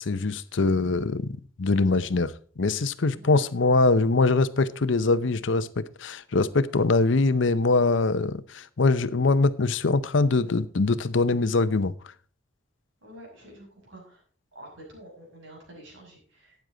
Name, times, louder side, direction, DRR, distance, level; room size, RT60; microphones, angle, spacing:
voice 1, 0.0-11.9, left 3 dB, 70° left, 0.7 m, -23 dB
voice 2, 13.0-14.2 14.5-16.6, right 1 dB, 75° right, 6.3 m, -48 dB
12.5 x 9.6 x 3.9 m
head